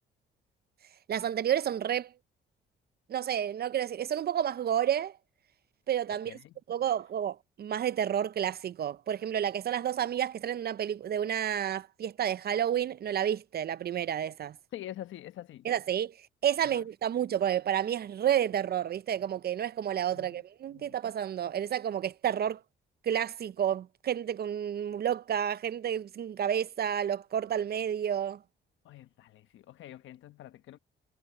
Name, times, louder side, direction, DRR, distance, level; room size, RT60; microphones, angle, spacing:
voice 1, 1.1-2.1 3.1-5.1 5.9-6.4 6.7-14.6 15.6-22.6 23.0-28.4, right 10 dB, 50° right, 0.6 m, -30 dB
voice 2, 6.2-6.6 14.7-15.7 16.6-16.9 20.1-21.0 28.8-30.8, left 12 dB, 75° left, 1.1 m, -46 dB
cardioid pair, 90°, 20 cm